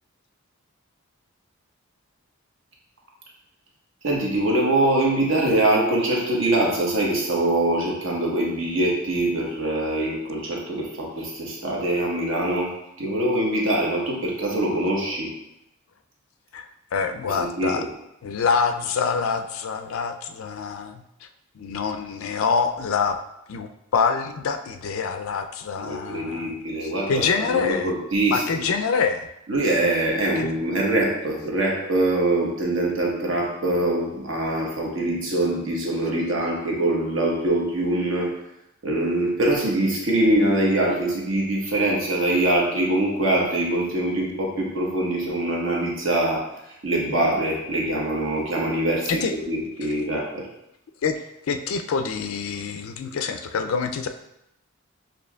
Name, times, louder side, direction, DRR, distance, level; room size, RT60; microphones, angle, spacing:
voice 1, 4.0-15.3 17.4-17.9 25.8-28.6 29.5-38.3 38.8-46.4 46.8-49.1 49.5-50.4, right 1 dB, 65° right, -2 dB, 1.0 m, -23 dB
voice 2, 16.9-17.9 18.2-21.3 21.6-23.2 23.5-27.9 28.3-29.3 30.4-30.5 49.1-49.3 51.0-54.1, left 5 dB, 75° left, 7 dB, 0.4 m, -26 dB
6.6 x 2.7 x 2.2 m, 0.83 s
head